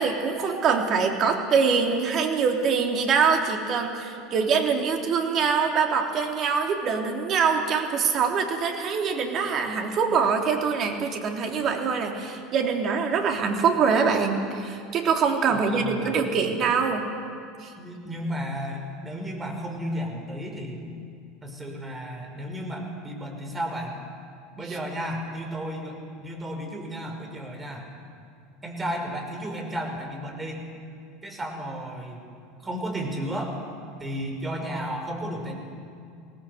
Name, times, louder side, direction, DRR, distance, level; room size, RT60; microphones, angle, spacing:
voice 1, 0.0-17.1 17.6-17.7, right 5 dB, 45° right, 3 dB, 3.2 m, -24 dB
voice 2, 15.5-16.2 17.8-20.9 21.4-24.0 24.6-27.9 28.6-30.6 31.2-32.3 32.6-33.6 34.0-35.6, equal, 20° right, 2 dB, 5.8 m, -33 dB
22.5 x 18.0 x 8.0 m, 2.3 s
hypercardioid pair, 80°, 0 cm